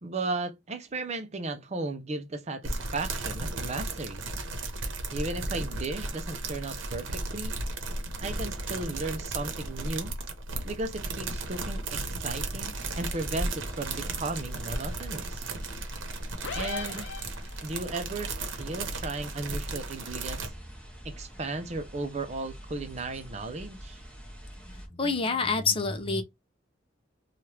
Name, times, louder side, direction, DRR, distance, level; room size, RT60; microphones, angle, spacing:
voice 1, 0.0-4.2 5.1-7.6 8.2-10.1 10.6-15.5 16.5-17.1 17.6-20.5 21.0-24.0, right 2 dB, 35° right, 0.5 m, -35 dB
sound 1, 2.6-20.5, right 2 dB, 90° right, 0.8 m, -35 dB
sound 2, 12.7-24.9, equal, 10° left, 0.9 m, -46 dB
sound 3, 16.4-17.8, left 6 dB, 80° left, 0.5 m, -37 dB
voice 2, 24.7-26.2, left 4 dB, 30° left, 0.5 m, -28 dB
2.9 x 2.4 x 3.2 m
head